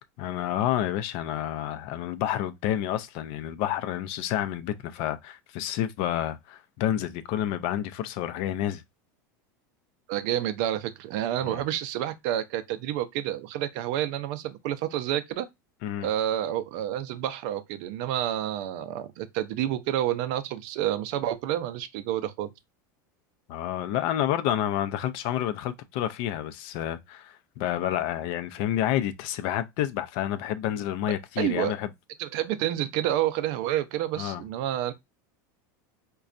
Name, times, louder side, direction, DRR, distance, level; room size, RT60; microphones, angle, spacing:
voice 1, 0.2-8.8 11.4-11.6 15.8-16.1 23.5-31.9 34.1-34.4, left 11 dB, 60° left, 0.4 m, -29 dB
voice 2, 10.1-15.5 16.0-22.5 31.4-31.7 32.2-34.9, right 12 dB, 60° right, 0.5 m, -29 dB
4.1 x 2.2 x 2.4 m
supercardioid pair, 120°, 10 cm